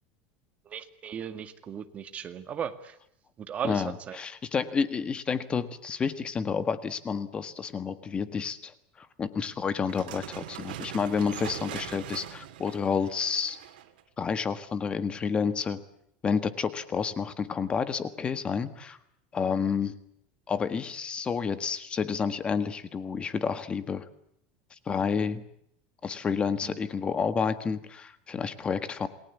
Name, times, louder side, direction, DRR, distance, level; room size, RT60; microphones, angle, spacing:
voice 1, 0.6-3.0 3.4-4.2 26.6-26.8, right 8 dB, 30° right, 8 dB, 2.0 m, -36 dB
voice 2, 3.6-13.6 14.2-15.8 16.2-19.0 19.3-20.0 20.5-24.1 24.9-25.4 26.0-29.1, left 6 dB, 20° left, 12 dB, 1.6 m, -30 dB
sound 1, 9.8-14.0, right 12 dB, 90° right, 2.8 m, -41 dB
28.5 x 19.5 x 8.5 m, 0.74 s
supercardioid pair, 145°, 5 cm